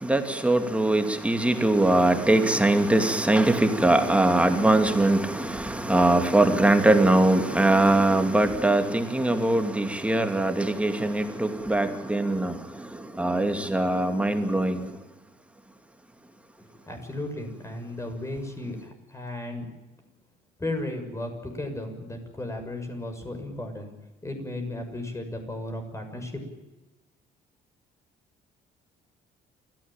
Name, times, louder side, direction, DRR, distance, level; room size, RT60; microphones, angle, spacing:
voice 1, 0.0-12.5 13.2-14.9, right 1 dB, 5° right, 6 dB, 2.5 m, -22 dB
voice 2, 16.7-19.7 20.6-23.9 24.2-26.6, left 1 dB, 15° left, 6 dB, 6.6 m, -35 dB
28.0 x 15.5 x 9.1 m, 1.1 s
cardioid pair, 110°, 17 cm